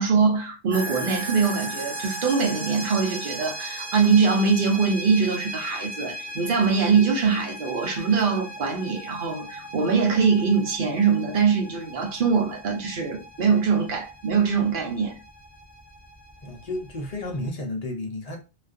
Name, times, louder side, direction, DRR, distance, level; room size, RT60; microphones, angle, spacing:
voice 1, 0.0-15.1, right 5 dB, 55° right, 0.8 m, -23 dB
sound 1, 0.7-17.5, right 1 dB, 30° right, 0.6 m, -37 dB
voice 2, 16.4-18.4, left 1 dB, 45° left, 0.6 m, -32 dB
2.4 x 2.3 x 2.4 m
omnidirectional pair, 1.1 m